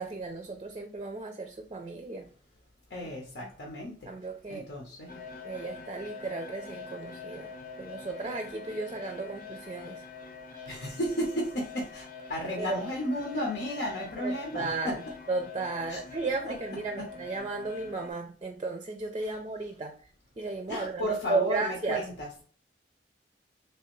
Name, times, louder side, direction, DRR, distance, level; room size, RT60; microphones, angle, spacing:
voice 1, 0.0-2.3 3.4-3.5 4.1-4.7 5.4-7.5 7.8-10.0 12.6-12.8 14.2-22.1, right 3 dB, 30° right, 5 dB, 0.4 m, -34 dB
voice 2, 2.9-3.9 4.5-5.2 10.7-14.9 15.9-16.0 16.4-16.5 20.7-22.3, equal, 90° left, -1 dB, 1.0 m, -33 dB
sound 1, 5.1-18.1, left 5 dB, 55° left, 0.8 m, -45 dB
3.3 x 3.2 x 3.1 m, 0.43 s
head